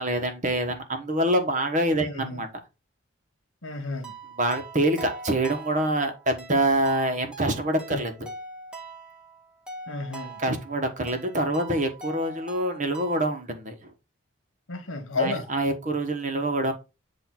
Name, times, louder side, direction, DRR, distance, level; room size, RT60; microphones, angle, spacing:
voice 1, 0.0-2.5 4.4-8.3 10.4-13.9 15.1-16.7, right 1 dB, 35° right, 1.2 m, -26 dB
voice 2, 2.0-2.4 3.6-4.1 7.9-8.0 9.9-10.4 14.7-15.4, left 3 dB, 75° left, 1.4 m, -31 dB
sound 1, 4.0-13.4, right 3 dB, 5° right, 1.0 m, -43 dB
8.3 x 2.8 x 4.2 m
head